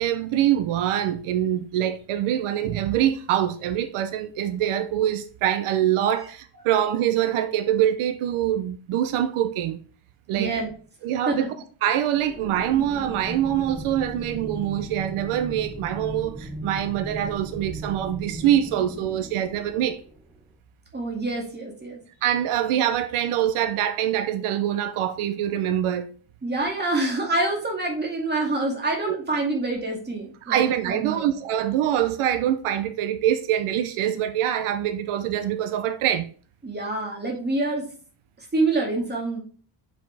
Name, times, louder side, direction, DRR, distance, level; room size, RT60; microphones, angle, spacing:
voice 1, 0.0-9.8 10.3-10.5 11.0-11.5 11.8-20.0 22.2-26.1 29.1-29.2 30.4-36.3, right 11 dB, 80° right, 0.8 m, -24 dB
voice 2, 10.3-10.7 11.3-11.5 20.9-22.0 26.4-31.3 36.6-37.9 38.5-39.4, right 2 dB, 20° right, 2.3 m, -26 dB
sound 1, 12.2-20.4, right 2 dB, ahead, 1.1 m, -37 dB
7.0 x 5.8 x 3.4 m
cardioid pair, 130°, 49 cm